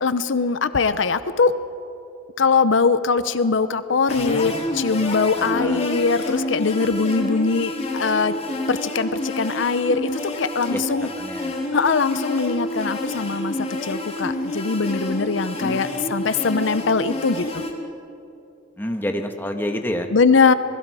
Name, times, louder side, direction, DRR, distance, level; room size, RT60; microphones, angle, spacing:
voice 1, 0.0-1.5 2.4-8.3 8.7-11.1 11.7-13.5 13.8-17.6 20.1-20.5, left 4 dB, 85° left, 13 dB, 0.7 m, -21 dB
sound 1, 4.1-17.7, left 1 dB, 35° left, 2.5 m, -28 dB
voice 2, 5.4-5.8 10.7-10.8 11.2-11.6 15.6-16.5 18.8-20.1, equal, 10° left, 5 dB, 1.4 m, -29 dB
26.5 x 21.0 x 4.9 m, 2.7 s
head